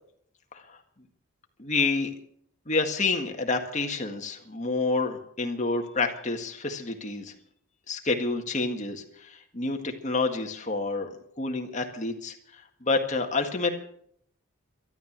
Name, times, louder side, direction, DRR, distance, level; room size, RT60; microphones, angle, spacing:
voice 1, 1.6-2.1 2.7-7.3 7.9-11.1 11.4-13.8, left 3 dB, 35° left, 4 dB, 1.8 m, -29 dB
13.0 x 12.0 x 7.5 m, 0.67 s
head